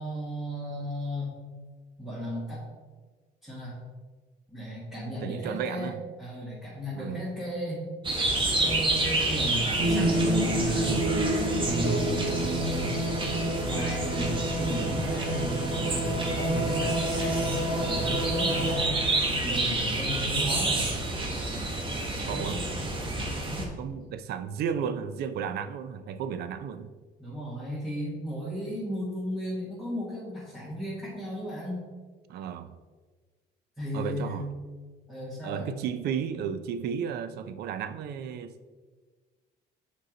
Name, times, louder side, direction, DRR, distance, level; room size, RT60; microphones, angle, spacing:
voice 1, 0.0-1.4 2.0-2.8 3.4-3.8 4.5-5.9 6.2-7.8 8.6-11.1 11.6-13.0 13.6-20.9 22.3-22.9 23.5-23.7 27.2-31.8 33.8-34.4 35.1-35.7, equal, 5° right, -10 dB, 2.0 m, -34 dB
voice 2, 5.2-6.0 7.0-7.2 22.3-22.6 23.8-26.9 32.3-32.8 33.9-34.5 35.4-38.5, right 7 dB, 70° right, 11 dB, 0.5 m, -33 dB
sound 1, 8.0-23.7, right 2 dB, 30° right, 1.2 m, -30 dB
sound 2, 9.8-18.8, right 1 dB, 45° right, 1.4 m, -29 dB
6.4 x 4.6 x 3.8 m, 1.4 s
cardioid pair, 110°, 17 cm